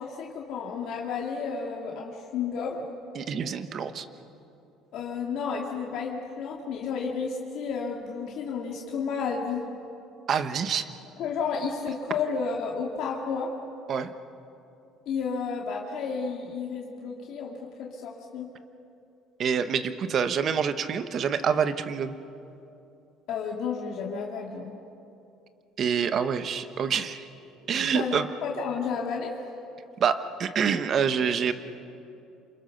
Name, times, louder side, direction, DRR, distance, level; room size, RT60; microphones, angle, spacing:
voice 1, 0.0-2.9 4.9-9.6 11.2-13.5 15.1-18.5 23.3-24.7 27.9-29.4, left 5 dB, 60° left, -1 dB, 2.6 m, -32 dB
voice 2, 3.1-4.1 10.3-10.9 13.9-14.1 19.4-22.1 25.8-27.2 27.7-28.3 30.0-31.5, right 7 dB, 40° right, 11 dB, 1.2 m, -26 dB
28.0 x 27.0 x 6.7 m, 2.8 s
cardioid pair, 145°, 0 cm